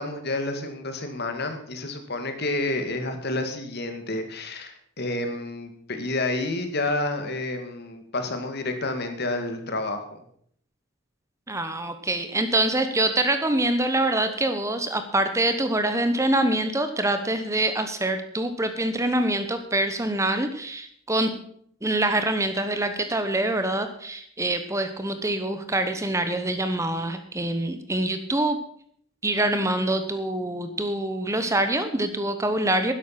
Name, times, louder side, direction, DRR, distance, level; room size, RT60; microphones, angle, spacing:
voice 1, 0.0-10.2, left 2 dB, 50° left, 7 dB, 1.9 m, -29 dB
voice 2, 11.5-21.3 21.8-28.6 29.2-32.9, right 1 dB, 15° right, 9 dB, 1.0 m, -25 dB
12.0 x 11.0 x 5.9 m, 0.64 s
head